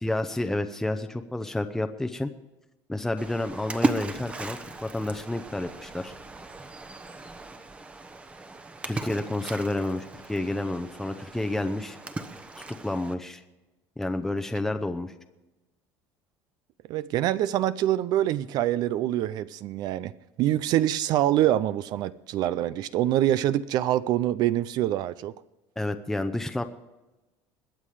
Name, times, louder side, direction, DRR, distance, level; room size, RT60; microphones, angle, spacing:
voice 1, 0.0-2.3 2.9-6.1 8.8-12.0 12.7-13.4 14.0-15.1 25.8-26.6, left 1 dB, 5° left, 7 dB, 0.7 m, -30 dB
Splash splatter, 3.2-13.1, right 2 dB, 15° right, 1.0 m, -36 dB
voice 2, 16.9-20.1 20.4-25.3, right 12 dB, 55° right, 16 dB, 0.5 m, -25 dB
21.5 x 7.4 x 4.9 m, 1.0 s
cardioid pair, 135°, 8 cm